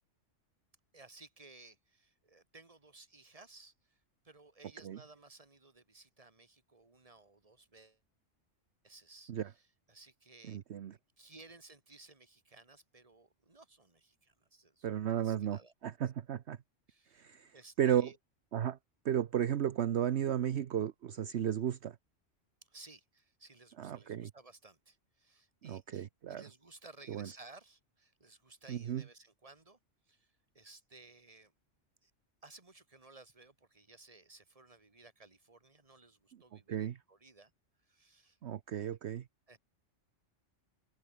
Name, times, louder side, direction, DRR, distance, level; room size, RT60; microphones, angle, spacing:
voice 1, 0.9-8.0 8.8-10.6 10.9-15.7 16.9-17.3 17.5-18.2 22.7-29.8 30.1-31.5 32.0-32.1 32.4-37.5 37.8-38.4 39.5-39.6, right 3 dB, 30° right, 2.2 m, -58 dB
voice 2, 10.5-10.9 14.8-16.6 17.1-18.1 18.5-18.8 19.0-22.0 23.8-24.3 25.6-26.4 27.1-27.3 28.7-29.0 36.7-37.0 38.4-39.2, right 10 dB, 65° right, 1.1 m, -34 dB
omnidirectional pair, 1.3 m